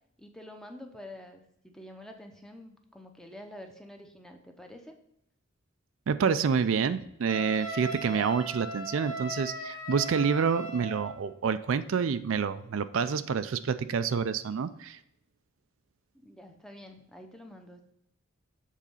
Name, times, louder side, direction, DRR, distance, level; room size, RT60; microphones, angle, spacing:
voice 1, 0.2-4.9 16.1-17.9, left 1 dB, 5° left, 4 dB, 0.7 m, -48 dB
voice 2, 6.1-15.0, right 6 dB, 70° right, 12 dB, 0.4 m, -28 dB
Wind instrument woodwind instrument, 7.3-11.2, right 2 dB, 20° left, 1.2 m, -38 dB
7.4 x 3.9 x 5.6 m, 0.77 s
head